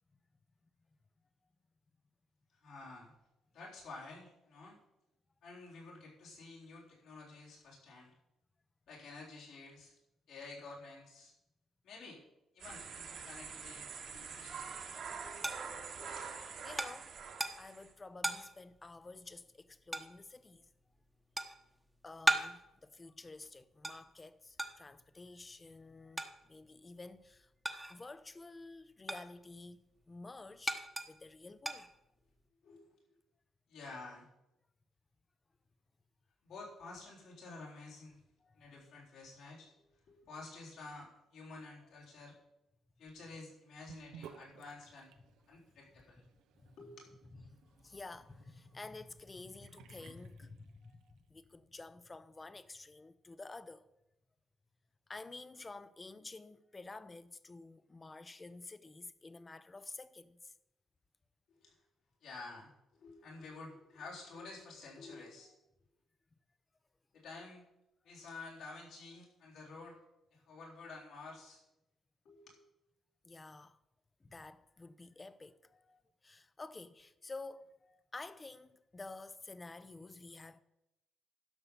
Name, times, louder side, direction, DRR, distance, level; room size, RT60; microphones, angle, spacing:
voice 1, 2.6-3.1 3.5-4.8 5.4-8.1 8.9-9.9 10.3-11.3 11.8-12.2 12.5-14.7 15.0-15.4 16.0-16.3 32.6-33.0 33.7-34.3 36.4-38.2 38.5-42.4 43.0-45.1 45.5-46.2 46.8-47.1 61.6-61.8 62.2-65.5 67.1-67.6 68.0-70.0 70.3-71.6 72.2-72.6, left 3 dB, 80° left, 3.9 m, -51 dB
sound 1, 12.6-17.9, right 6 dB, 65° right, 2.0 m, -45 dB
sound 2, 14.7-28.2 28.5-32.5, right 1 dB, 10° right, 1.1 m, -40 dB
voice 2, 16.6-17.2 17.6-20.7 22.0-27.5 27.9-31.9 38.4-38.7 46.6-46.8 47.5-53.9 55.1-60.5 63.3-63.4 73.2-73.8 74.2-80.6, left 3 dB, 25° left, 0.7 m, -51 dB
Sink (filling or washing) / Bathtub (filling or washing), 43.9-51.2, right 9 dB, 90° right, 0.9 m, -59 dB
12.0 x 5.6 x 7.0 m
cardioid pair, 90°, 0 cm